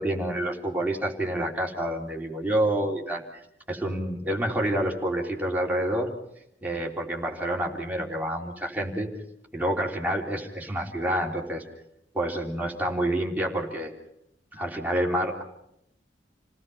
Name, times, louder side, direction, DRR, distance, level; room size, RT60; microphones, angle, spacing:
voice 1, 0.0-6.1 6.6-9.1 9.5-11.6 12.1-13.9 14.5-15.4, right 1 dB, 10° right, -1 dB, 3.5 m, -28 dB
29.0 x 18.5 x 5.6 m, 0.77 s
head